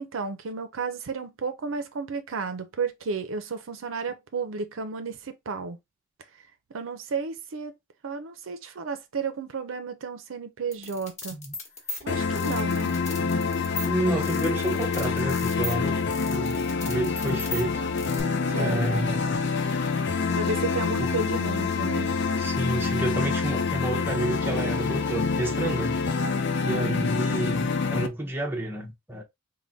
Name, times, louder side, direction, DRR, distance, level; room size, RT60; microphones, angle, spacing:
voice 1, 0.0-5.8 6.7-7.7 8.0-11.4 12.0-13.0 18.5-19.1 20.3-22.1 26.7-27.1, right 4 dB, 70° right, 0.5 m, -33 dB
sound 1, 10.7-18.2, left 2 dB, 35° left, 1.3 m, -37 dB
sound 2, 12.1-28.1, left 5 dB, 55° left, 0.5 m, -27 dB
voice 2, 13.8-16.0 16.2-17.8 18.6-19.5 21.0-21.1 22.4-26.0 26.6-29.2, right 1 dB, 10° right, 0.7 m, -30 dB
3.4 x 2.2 x 3.9 m
head